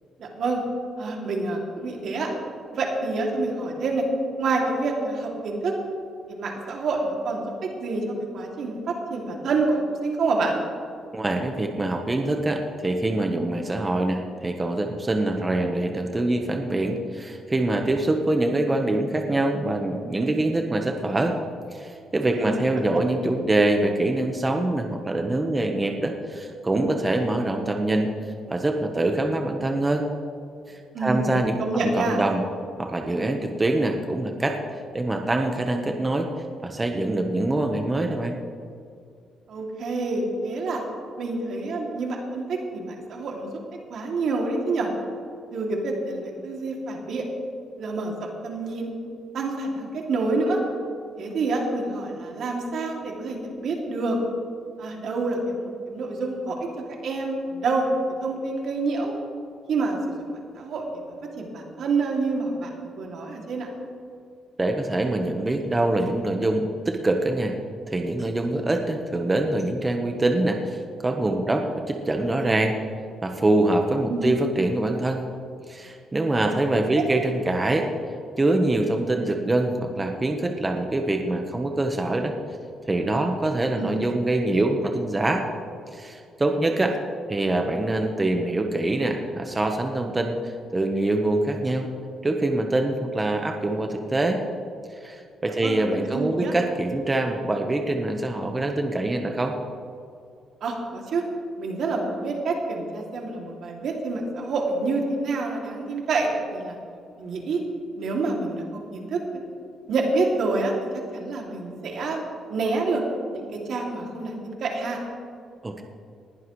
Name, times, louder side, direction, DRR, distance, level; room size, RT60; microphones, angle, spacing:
voice 1, 0.2-0.6 1.0-2.3 2.7-4.0 4.4-5.7 6.3-7.4 7.8-10.6 22.3-22.6 30.9-31.3 31.6-32.2 39.5-40.8 41.2-43.5 43.9-44.9 45.5-47.2 47.8-48.9 49.3-50.6 51.2-54.2 54.8-56.6 57.0-59.1 59.7-60.0 60.3-62.7 62.9-63.7 74.1-74.3 77.0-77.1 83.8-84.0 95.6-96.5 100.6-101.2 101.6-106.8 107.2-107.6 108.0-108.6 108.9-109.4 109.9-110.7 111.1-112.2 112.5-113.0 113.3-115.0, right 3 dB, 65° right, 0 dB, 2.6 m, -27 dB
voice 2, 11.1-21.4 21.7-28.1 28.5-30.1 30.7-32.4 32.8-34.6 34.9-36.3 36.6-38.4 64.6-67.5 67.9-72.8 73.2-75.2 75.7-77.9 78.4-82.3 82.9-85.4 85.9-87.0 87.3-91.9 92.2-94.4 95.0-99.5 115.6-115.8, right 2 dB, 20° right, 3 dB, 1.1 m, -24 dB
19.5 x 11.0 x 3.2 m, 2.4 s
cardioid pair, 90°, 0 cm